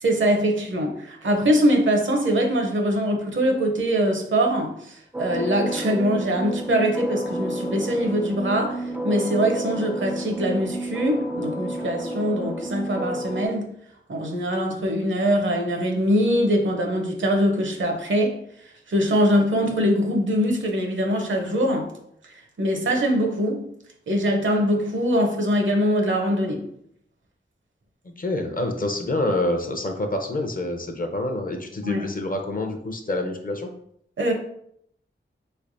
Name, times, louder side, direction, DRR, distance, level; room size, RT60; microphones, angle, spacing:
voice 1, 0.0-13.7 14.1-18.4 18.9-21.9 22.3-23.7 24.1-26.7 31.8-32.0 34.2-34.3, equal, 70° right, 0.7 m, -23 dB
sound 1, 5.1-13.5, right 1 dB, 10° right, 0.3 m, -30 dB
voice 2, 28.0-33.7, left 1 dB, 45° left, 0.5 m, -27 dB
3.2 x 3.2 x 2.6 m
wide cardioid pair, 65°, 21 cm